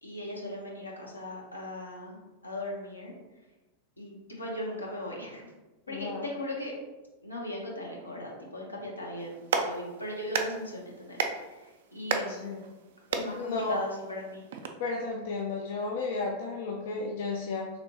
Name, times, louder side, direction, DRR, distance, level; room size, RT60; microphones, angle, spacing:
voice 1, 0.0-2.2 2.4-3.1 4.0-5.5 5.9-6.7 7.2-12.4 13.1-14.4, left 1 dB, 80° left, -2 dB, 0.8 m, -38 dB
voice 2, 5.9-6.3 12.3-12.6 13.4-13.8 14.8-17.7, left 3 dB, 55° left, 0 dB, 0.3 m, -33 dB
Clapping, 9.2-14.7, right 5 dB, 60° right, 0.3 m, -35 dB
3.2 x 2.9 x 2.6 m, 1.1 s
figure-of-eight pair, 90°, 0 cm